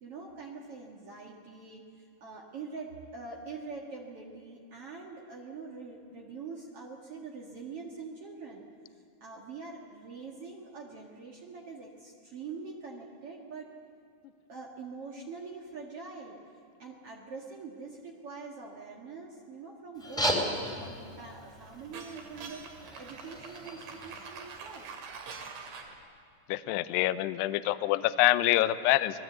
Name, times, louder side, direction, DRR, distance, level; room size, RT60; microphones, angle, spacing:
voice 1, 0.0-8.6 9.2-13.7 14.5-22.6 23.0-24.9, right 4 dB, 85° right, -1 dB, 1.3 m, -44 dB
sound 1, 19.9-24.9, equal, ahead, 2.2 m, -36 dB
sound 2, 20.8-26.0, right 5 dB, 60° right, 4.6 m, -45 dB
voice 2, 26.5-29.2, left 15 dB, 85° left, 13 dB, 2.4 m, -26 dB
27.0 x 20.5 x 8.0 m, 2.4 s
omnidirectional pair, 5.7 m